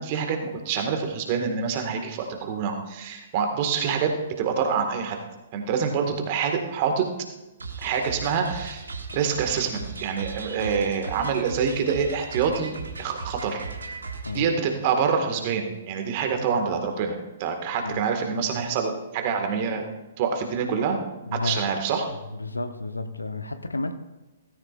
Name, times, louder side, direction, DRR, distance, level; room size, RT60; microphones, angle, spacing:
voice 1, 0.0-5.2 5.5-7.1 7.8-8.8 9.1-13.6 14.3-19.8 20.2-21.0 21.3-22.1, right 6 dB, 35° right, 4 dB, 1.9 m, -26 dB
sound 1, 7.6-14.4, right 4 dB, 70° right, 1.5 m, -37 dB
voice 2, 21.3-21.6 22.3-24.0, left 2 dB, 80° left, 9 dB, 1.0 m, -31 dB
17.0 x 14.5 x 2.6 m, 1.0 s
figure-of-eight pair, 120°, 0 cm